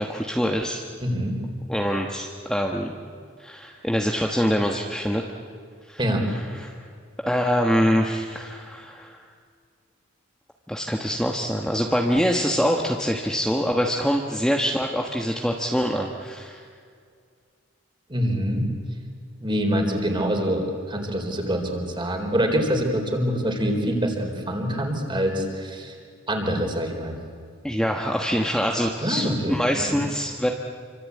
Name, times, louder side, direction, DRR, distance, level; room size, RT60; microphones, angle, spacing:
voice 1, 0.0-0.8 1.7-2.9 3.4-5.2 5.9-6.0 6.3-6.8 7.2-9.2 10.7-16.6 27.6-30.5, equal, 5° left, 1 dB, 1.3 m, -24 dB
voice 2, 1.0-1.4 6.0-6.3 18.1-18.7 19.4-25.9 26.3-27.2 29.0-30.0, equal, 25° right, 3 dB, 4.1 m, -25 dB
27.0 x 25.0 x 8.5 m, 2.2 s
head